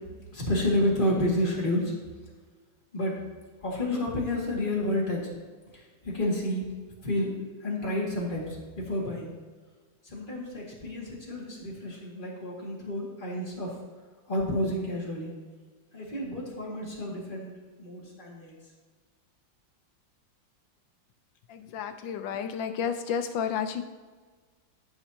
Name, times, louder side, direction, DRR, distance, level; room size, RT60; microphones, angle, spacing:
voice 1, 0.3-1.9 2.9-3.2 3.6-5.2 5.7-6.7 7.0-7.3 7.6-9.3 10.0-13.8 14.3-15.3 15.9-18.5, left 1 dB, 25° left, -4 dB, 2.2 m, -30 dB
voice 2, 21.5-23.8, left 7 dB, 80° left, 8 dB, 1.4 m, -31 dB
14.5 x 6.0 x 2.8 m, 1.4 s
omnidirectional pair, 2.1 m